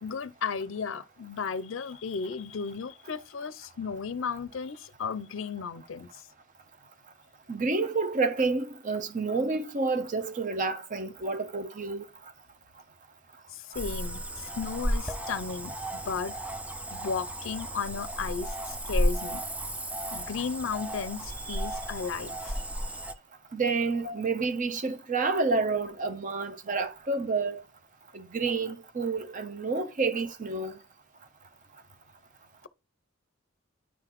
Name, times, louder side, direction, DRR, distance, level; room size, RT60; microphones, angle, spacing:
voice 1, 0.0-6.3 13.5-16.4 16.9-19.4 20.1-22.6 24.0-24.2, left 5 dB, 70° left, 0.5 m, -35 dB
voice 2, 7.5-12.1 21.5-21.6 23.5-27.6 28.1-30.8, right 4 dB, 40° right, 0.7 m, -29 dB
Cricket / Frog, 13.7-23.1, equal, 5° right, 0.3 m, -33 dB
9.3 x 3.9 x 3.0 m
head